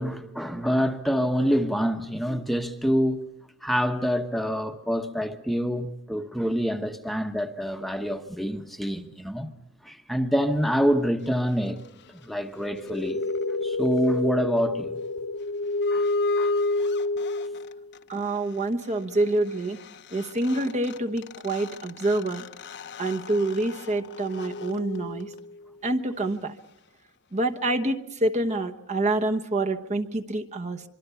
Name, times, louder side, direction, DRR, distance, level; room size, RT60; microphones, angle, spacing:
voice 1, 0.0-3.2 3.6-9.5 9.8-11.8 12.1-13.2 13.6-15.0 15.9-16.1 16.4-16.5, equal, ahead, 1.0 m, -26 dB
sound 1, 12.6-18.0 19.9-20.0 20.1-25.6, left 2 dB, 50° left, 0.9 m, -30 dB
voice 2, 18.1-19.8 20.1-22.4 23.0-25.3 25.8-26.5 27.3-30.8, right 2 dB, 30° right, 1.1 m, -27 dB
25.0 x 23.5 x 7.0 m
head